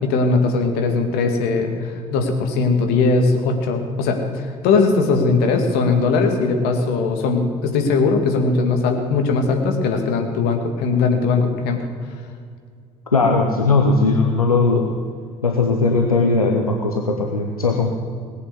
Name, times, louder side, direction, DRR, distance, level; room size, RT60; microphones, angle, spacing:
voice 1, 0.0-11.8, left 4 dB, 60° left, 4 dB, 2.3 m, -19 dB
voice 2, 13.1-14.9 15.4-17.9, left 3 dB, 90° left, 2 dB, 1.0 m, -18 dB
19.0 x 8.4 x 8.1 m, 2.1 s
figure-of-eight pair, 55°, 18 cm